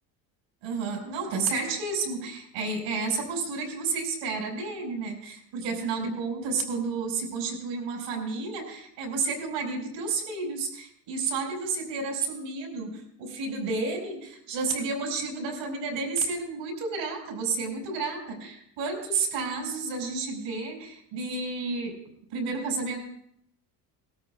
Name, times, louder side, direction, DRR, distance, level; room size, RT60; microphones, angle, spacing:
voice 1, 0.6-21.9 22.3-23.0, right 4 dB, 80° right, 0 dB, 5.2 m, -31 dB
19.0 x 13.5 x 2.3 m, 0.69 s
supercardioid pair, 80°, 46 cm